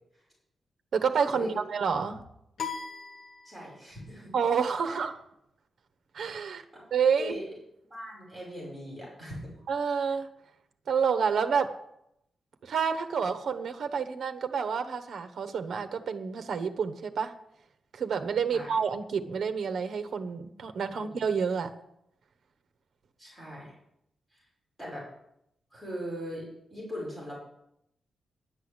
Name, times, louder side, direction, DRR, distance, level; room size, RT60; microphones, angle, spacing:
voice 1, 0.9-2.2 4.3-5.2 6.1-6.6 6.9-7.3 9.7-10.3 10.9-11.8 12.6-17.3 17.9-21.7, right 6 dB, 65° right, 7 dB, 1.1 m, -29 dB
sound 1, 2.6-4.0, left 6 dB, 65° left, 1.2 m, -39 dB
voice 2, 3.4-4.3 4.8-5.0 6.5-6.9 7.2-7.5 7.9-9.6 18.5-18.7 20.9-21.3 23.2-23.7 24.3-24.4 24.8-25.0 25.7-27.4, equal, ahead, -6 dB, 5.7 m, -40 dB
11.0 x 8.2 x 8.1 m, 0.79 s
wide cardioid pair, 160°, 0 cm